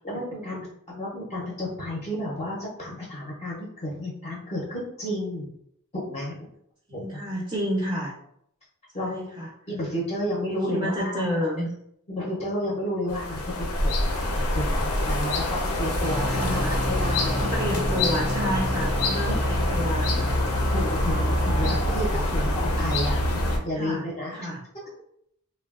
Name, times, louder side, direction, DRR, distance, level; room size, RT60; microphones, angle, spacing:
voice 1, 0.0-5.5 5.9-6.5 6.9-7.2 8.9-9.3 9.7-11.1 12.1-17.5 18.6-18.7 19.3-19.5 20.7-23.2 23.6-24.5, equal, 30° left, -4 dB, 0.6 m, -31 dB
voice 2, 6.9-8.1 9.0-9.5 10.7-11.7 16.2-16.8 17.4-20.3 21.5-21.8 23.8-24.1 24.3-24.6, equal, 20° right, -3 dB, 0.4 m, -30 dB
sound 1, 13.1-23.6, left 1 dB, 90° left, 0.6 m, -25 dB
sound 2, 16.0-22.0, equal, 85° right, 0.7 m, -32 dB
3.1 x 2.2 x 2.3 m, 0.73 s
head